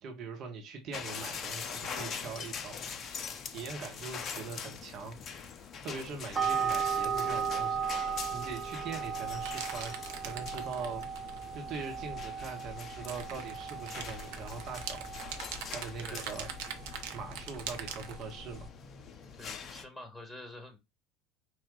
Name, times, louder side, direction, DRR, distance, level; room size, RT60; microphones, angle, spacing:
voice 1, 0.0-2.9 3.5-5.2 5.8-9.9 10.2-11.0 11.5-15.0 15.7-16.5 17.1-18.7, right 5 dB, 50° right, 1.3 m, -42 dB
sound 1, 0.9-19.8, left 6 dB, 40° left, 0.6 m, -44 dB
sound 2, 6.3-18.7, right 6 dB, 15° right, 0.7 m, -37 dB
sound 3, 9.5-11.5 12.9-18.2, right 8 dB, 65° right, 0.8 m, -42 dB
voice 2, 19.4-20.8, left 1 dB, ahead, 1.3 m, -47 dB
5.1 x 2.5 x 3.7 m
figure-of-eight pair, 70°, 0 cm